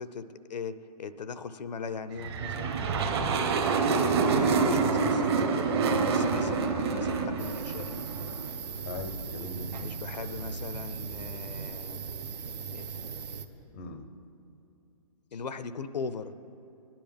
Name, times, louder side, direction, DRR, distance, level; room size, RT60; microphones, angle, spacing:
voice 1, 0.0-2.8 4.2-8.1 9.8-12.3 12.7-12.8 15.3-16.3, left 5 dB, 80° left, 13 dB, 0.6 m, -39 dB
sound 1, 2.2-8.6, right 5 dB, 40° right, 0.9 m, -27 dB
voice 2, 3.2-3.5 3.9-4.2 8.8-9.9 13.7-14.1, left 4 dB, 20° left, 9 dB, 0.4 m, -40 dB
sound 2, 7.4-13.5, right 5 dB, 75° right, 0.8 m, -38 dB
18.0 x 10.5 x 3.4 m, 2.7 s
hypercardioid pair, 155°, 21 cm